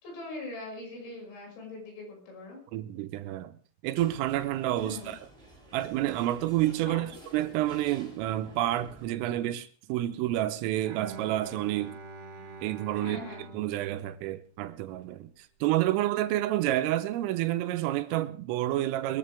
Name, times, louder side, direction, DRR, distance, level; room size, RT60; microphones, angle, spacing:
voice 1, 0.0-2.6 4.8-5.1 6.8-7.1 13.0-13.5, left 2 dB, 65° left, 8.5 m, -41 dB
voice 2, 2.7-3.6 3.8-5.2 5.7-12.0 12.6-13.2 13.5-19.2, right 14 dB, 85° right, 3.5 m, -29 dB
sound 1, 3.9-9.1, left 1 dB, 10° right, 5.4 m, -50 dB
Bowed string instrument, 10.8-15.0, right 4 dB, 65° right, 3.6 m, -46 dB
22.5 x 14.5 x 3.4 m
omnidirectional pair, 5.8 m